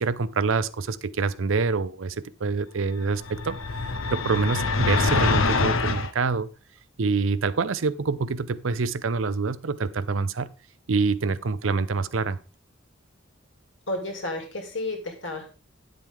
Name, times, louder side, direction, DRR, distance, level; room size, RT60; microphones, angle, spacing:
voice 1, 0.0-3.6 4.1-6.5 7.0-10.5 10.9-12.4, right 4 dB, 85° right, 0.6 m, -26 dB
sound 1, 3.2-6.1, left 4 dB, 85° left, 0.9 m, -25 dB
voice 2, 13.9-15.5, left 2 dB, 70° left, 2.5 m, -32 dB
10.0 x 7.6 x 3.7 m
head